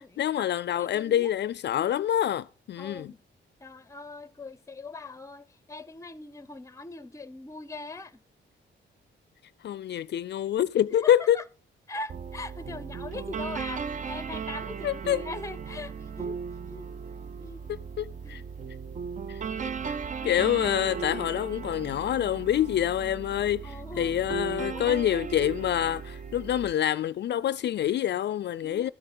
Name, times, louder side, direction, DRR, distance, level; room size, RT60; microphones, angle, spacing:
voice 1, 0.2-3.1 9.6-11.4 14.8-15.2 18.0-18.4 19.3-19.9 20.2-28.9, left 11 dB, 65° left, 0.4 m, -27 dB
voice 2, 0.8-1.3 2.8-3.2 3.6-8.2 11.0-11.4 11.9-16.4 16.7-16.9 17.4-17.6 18.2-18.4 23.6-24.9 28.6-28.9, left 3 dB, 15° left, 0.7 m, -41 dB
sound 1, 12.1-26.7, right 6 dB, 40° right, 0.5 m, -36 dB
13.0 x 6.7 x 5.5 m
cardioid pair, 115°, 19 cm